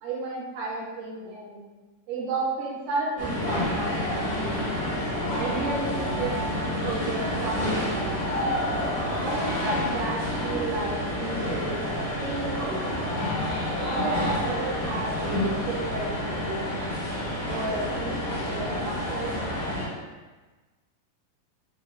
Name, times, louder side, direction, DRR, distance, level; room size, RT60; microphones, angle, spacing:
voice 1, 0.0-1.6 2.1-4.8 5.3-6.3 6.8-8.5 9.2-11.8 12.2-13.0 13.8-16.8 17.4-19.3, right 2 dB, 80° right, -4 dB, 2.3 m, -33 dB
sound 1, 3.2-19.9, left 1 dB, 55° left, 1.1 m, -29 dB
5.2 x 2.2 x 2.3 m, 1.3 s
omnidirectional pair, 3.6 m